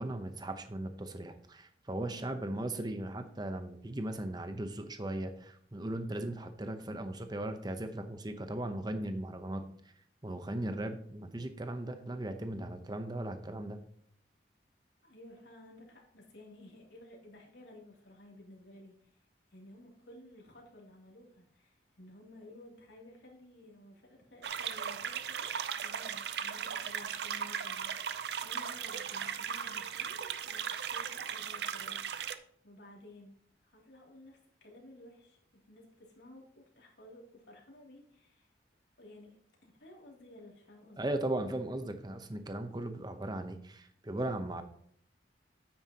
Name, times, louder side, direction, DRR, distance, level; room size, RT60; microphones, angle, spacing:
voice 1, 0.0-9.9 10.2-13.8 41.0-44.6, right 1 dB, 25° right, 8 dB, 0.8 m, -37 dB
voice 2, 2.1-2.5 15.0-19.2 19.5-32.4 32.6-33.3 33.6-38.5 39.0-39.4 39.6-41.0, left 1 dB, 75° left, -2 dB, 2.8 m, -55 dB
sound 1, 24.4-32.4, right 8 dB, 65° right, 0.5 m, -37 dB
9.4 x 8.8 x 2.9 m, 0.64 s
head